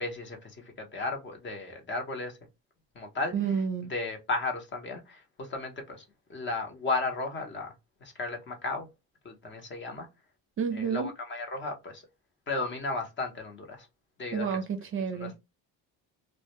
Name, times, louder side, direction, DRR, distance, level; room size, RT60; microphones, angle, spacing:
voice 1, 0.0-2.4 2.9-3.3 3.9-6.0 6.3-7.7 8.0-8.9 9.2-10.1 10.7-12.0 12.5-13.9 14.2-14.5 15.1-15.4, left 3 dB, 30° left, 0.7 m, -34 dB
voice 2, 3.3-3.9 10.6-11.1 14.3-15.3, right 6 dB, 35° right, 0.5 m, -30 dB
2.1 x 2.1 x 2.8 m
cardioid pair, 120°, 36 cm